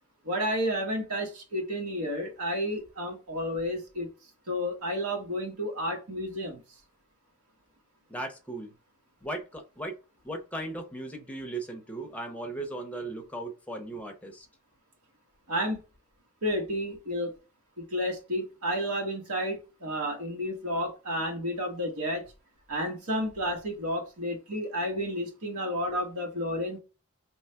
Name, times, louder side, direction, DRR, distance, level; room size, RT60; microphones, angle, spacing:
voice 1, 0.2-4.1 4.5-6.6 15.5-15.8 16.4-17.3 17.8-22.2 22.7-26.8, equal, 75° right, 1.2 m, -31 dB
voice 2, 8.1-8.7 9.2-10.0 10.2-14.5, right 2 dB, 5° left, 0.7 m, -37 dB
3.1 x 2.4 x 4.3 m
head